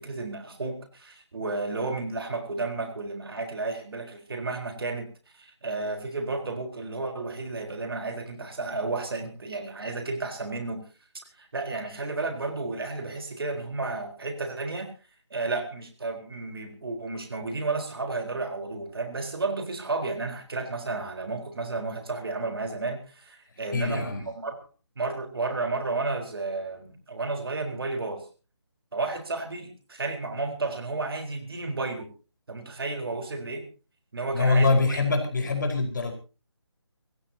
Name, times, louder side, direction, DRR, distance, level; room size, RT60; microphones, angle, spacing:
voice 1, 0.0-5.1 5.3-10.8 11.4-14.9 15.3-24.5 25.0-28.2 28.9-32.1 32.5-33.7 34.1-35.0, right 3 dB, 55° right, 6 dB, 4.3 m, -32 dB
voice 2, 23.7-24.2 34.3-36.1, left 3 dB, 45° left, 5 dB, 4.7 m, -24 dB
24.5 x 16.0 x 2.9 m, 0.33 s
figure-of-eight pair, 165°, 15 cm